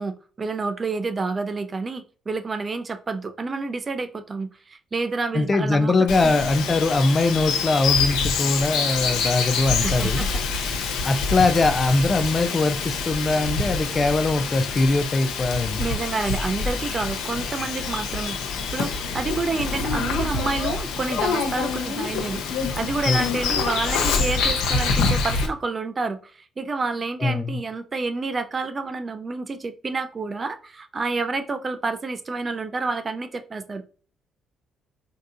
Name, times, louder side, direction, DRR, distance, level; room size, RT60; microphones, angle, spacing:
voice 1, 0.0-5.9 6.2-6.4 9.8-10.3 15.8-33.8, right 3 dB, 35° right, 0.4 m, -29 dB
voice 2, 5.3-10.2 11.0-15.8 23.1-23.2 27.2-27.6, left 3 dB, 35° left, 0.4 m, -21 dB
Bird vocalization bird call bird song, 6.1-25.5, left 4 dB, 85° left, 0.8 m, -26 dB
4.5 x 2.7 x 2.5 m
cardioid pair, 80°, 0 cm